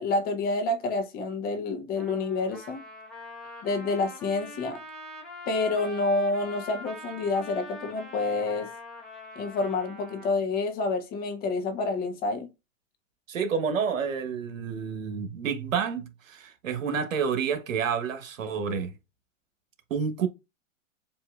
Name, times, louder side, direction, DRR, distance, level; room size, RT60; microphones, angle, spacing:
voice 1, 0.0-2.8 3.6-4.8 5.5-8.7 9.4-12.5, left 3 dB, 25° left, 0.8 m, -28 dB
Trumpet, 2.0-10.4, left 1 dB, ahead, 1.2 m, -43 dB
voice 2, 13.3-18.9 19.9-20.3, right 6 dB, 85° right, 1.2 m, -29 dB
7.4 x 2.7 x 2.4 m
hypercardioid pair, 135°, 38 cm